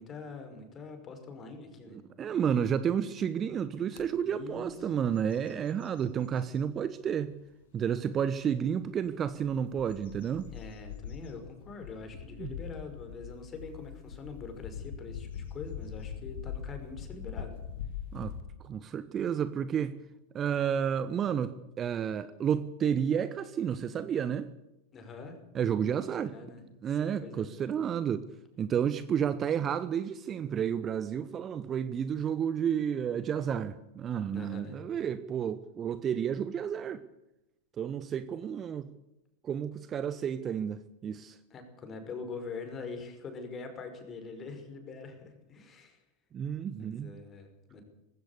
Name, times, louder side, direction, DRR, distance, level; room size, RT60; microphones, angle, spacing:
voice 1, 0.0-2.0 4.2-4.9 10.5-17.5 24.9-25.4 26.2-27.5 34.3-34.8 41.5-46.0 46.8-47.8, left 4 dB, 25° left, 6 dB, 5.4 m, -44 dB
voice 2, 1.9-7.3 7.7-10.5 12.4-12.5 18.1-18.3 18.6-20.0 20.3-24.5 25.5-26.4 26.8-28.3 28.6-37.0 37.8-38.9 39.4-41.4 46.3-47.1, right 8 dB, 25° right, 14 dB, 1.0 m, -31 dB
sound 1, 3.9-4.0 4.6-4.8 5.1-6.6 7.2-7.3 9.1-18.4, left 8 dB, 55° left, 2.9 m, -43 dB
19.5 x 16.5 x 8.3 m, 0.92 s
figure-of-eight pair, 90°, 0 cm